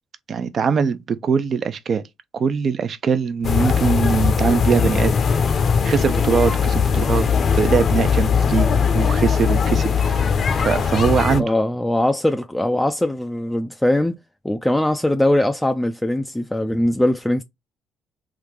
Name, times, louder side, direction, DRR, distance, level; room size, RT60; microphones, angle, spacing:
voice 1, 0.3-2.0 2.3-5.1 5.5-8.7 8.9-11.4, right 6 dB, 50° right, 0.6 m, -22 dB
sound 1, 3.4-11.4, left 6 dB, 45° left, 0.7 m, -19 dB
voice 2, 11.4-14.2 14.4-17.4, left 1 dB, 5° left, 0.4 m, -21 dB
3.7 x 2.7 x 4.6 m
cardioid pair, 90°, 0 cm